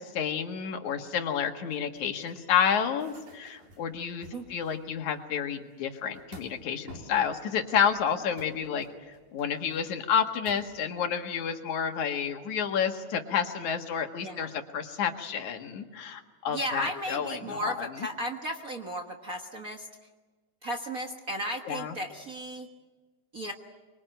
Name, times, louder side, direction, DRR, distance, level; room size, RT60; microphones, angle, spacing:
voice 1, 0.0-18.1 21.6-22.0, left 7 dB, 80° left, 5 dB, 3.1 m, -30 dB
sound 1, 1.7-5.3 5.5-6.6 6.9-7.3 7.7-10.7, right 2 dB, 90° right, 5.3 m, -52 dB
voice 2, 16.5-19.9 20.6-22.7 23.3-23.5, equal, 40° right, 3 dB, 1.4 m, -35 dB
25.0 x 23.0 x 9.1 m, 1.3 s
omnidirectional pair, 3.3 m